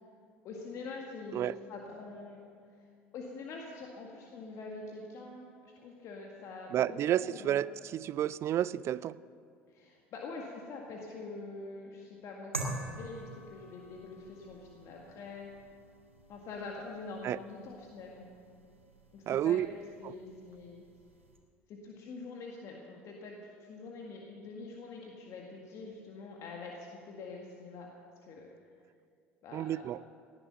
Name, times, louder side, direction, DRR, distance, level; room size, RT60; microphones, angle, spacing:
voice 1, 0.4-2.4 3.1-7.6 9.7-15.5 16.3-18.3 19.1-20.8 21.7-27.9 28.2-28.5 29.4-29.8, left 3 dB, 50° left, 0 dB, 1.9 m, -45 dB
voice 2, 6.7-9.2 17.2-17.4 19.3-19.7 20.0-20.1 29.5-30.0, right 11 dB, 40° right, 19 dB, 0.4 m, -31 dB
sound 1, 12.5-21.4, right 2 dB, 90° right, 1.5 m, -46 dB
18.0 x 11.0 x 7.1 m, 2.3 s
figure-of-eight pair, 65°, 7 cm